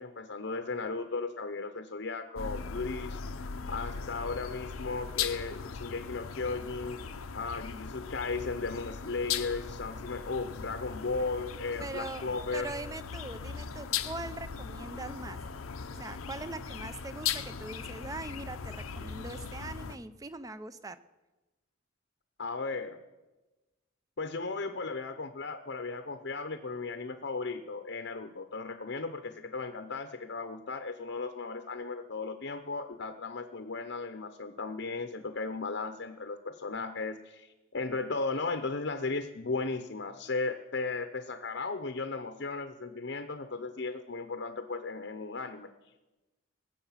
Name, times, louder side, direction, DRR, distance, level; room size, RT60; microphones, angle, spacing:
voice 1, 0.0-7.0 7.3-12.7 22.4-23.0 24.2-45.7, left 3 dB, 55° left, 8 dB, 0.7 m, -36 dB
sound 1, 2.4-20.0, left 6 dB, 90° left, 0.7 m, -39 dB
voice 2, 11.8-12.3 12.5-15.5 16.0-21.0, right 2 dB, 15° right, 13 dB, 0.4 m, -41 dB
20.5 x 7.9 x 5.7 m, 1.1 s
head